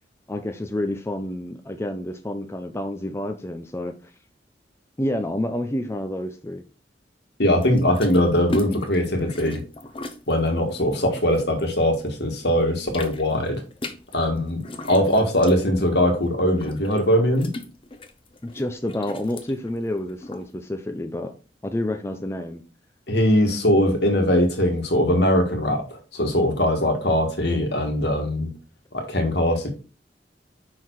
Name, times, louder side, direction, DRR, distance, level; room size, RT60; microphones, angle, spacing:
voice 1, 0.3-3.9 5.0-6.6 18.4-21.3 21.6-22.6, left 1 dB, 15° left, 0.5 m, -29 dB
voice 2, 7.4-9.6 10.3-13.6 14.1-17.5 23.1-28.5 28.9-29.7, left 1 dB, 65° left, 1.7 m, -21 dB
sound 1, 7.6-12.1 12.5-20.5, left 2 dB, 30° left, 0.9 m, -38 dB
5.7 x 4.6 x 4.6 m
head